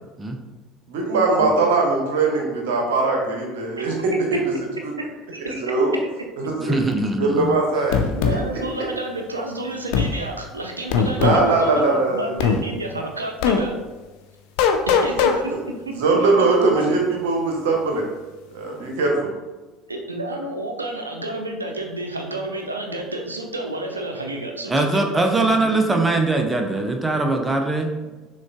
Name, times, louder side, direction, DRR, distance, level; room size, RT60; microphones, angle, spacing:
voice 1, 0.9-4.4 5.7-5.9 6.6-6.7 7.2-8.3 11.2-12.3 15.9-18.0 18.5-19.3, right 3 dB, 65° right, 0 dB, 0.8 m, -20 dB
voice 2, 5.0-5.6 8.1-13.7 14.9-15.9 19.9-25.0 25.4-25.8, right 1 dB, 85° right, 2 dB, 0.4 m, -30 dB
voice 3, 6.6-7.6 24.7-27.9, right 2 dB, 15° right, 4 dB, 0.5 m, -21 dB
sound 1, 7.9-8.4 9.9-10.1 10.9-11.4 12.4-12.6 13.4-13.6 14.6-15.4, left 6 dB, 60° left, 0.3 m, -19 dB
6.0 x 2.3 x 2.3 m, 1.2 s
figure-of-eight pair, 65°, 0 cm